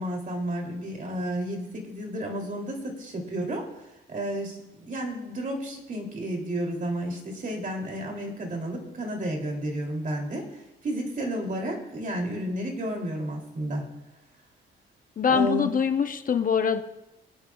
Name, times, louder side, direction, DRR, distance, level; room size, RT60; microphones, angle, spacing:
voice 1, 0.0-3.7 4.1-10.5 10.8-13.9 15.3-15.7, right 1 dB, 40° right, 1 dB, 3.0 m, -31 dB
voice 2, 15.2-16.8, left 7 dB, 45° left, 7 dB, 0.9 m, -23 dB
25.0 x 8.9 x 2.4 m, 0.93 s
cardioid pair, 90°, 20 cm